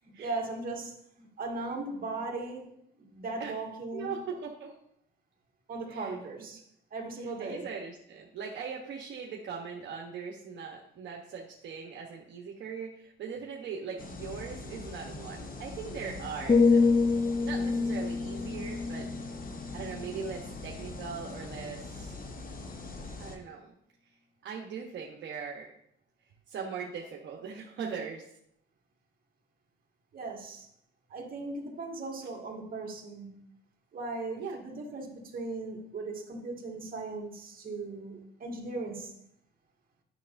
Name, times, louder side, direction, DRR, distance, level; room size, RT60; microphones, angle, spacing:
voice 1, 0.0-2.7 3.0-4.1 5.7-6.6 6.9-7.7 30.1-30.7 31.1-33.4 33.9-39.1, right 3 dB, 45° right, 0 dB, 1.8 m, -38 dB
voice 2, 3.9-4.7 5.9-6.2 7.2-19.1 19.7-22.1 23.2-23.7 24.4-25.7 26.5-28.2 34.4-34.6, right 6 dB, 65° right, -1 dB, 1.0 m, -40 dB
sound 1, 14.0-23.4, left 2 dB, 45° left, 1.1 m, -42 dB
sound 2, 16.5-20.5 20.8-21.2, left 4 dB, 20° left, 0.4 m, -27 dB
9.3 x 6.4 x 2.6 m, 0.72 s
cardioid pair, 90°, 20 cm